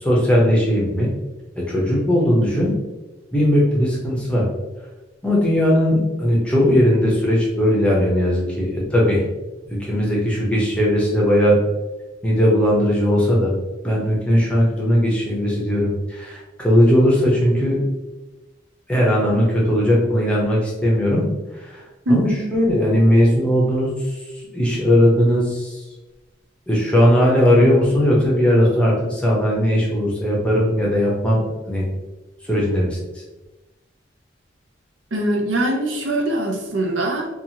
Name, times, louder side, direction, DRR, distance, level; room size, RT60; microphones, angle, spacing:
voice 1, 0.0-1.1 1.7-2.7 3.3-4.5 5.2-9.2 9.7-11.6 12.2-13.6 13.8-17.8 18.9-21.2 21.6-21.8 22.1-23.9 24.5-25.8 26.7-31.4 31.7-31.9 32.5-33.0, equal, 5° left, -4 dB, 0.6 m, -18 dB
voice 2, 22.1-22.5 35.1-37.3, right 1 dB, 85° right, 1 dB, 0.6 m, -22 dB
2.9 x 2.3 x 2.7 m, 1.1 s
head